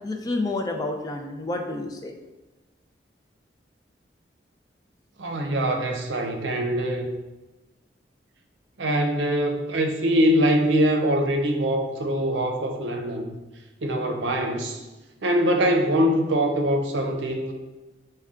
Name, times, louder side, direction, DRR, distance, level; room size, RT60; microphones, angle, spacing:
voice 1, 0.0-2.1, left 2 dB, 20° left, 3 dB, 0.4 m, -29 dB
voice 2, 5.2-7.1 8.8-13.3 13.8-14.8 15.2-17.5, equal, 85° right, 3 dB, 0.6 m, -23 dB
5.4 x 2.2 x 3.6 m, 1.1 s
head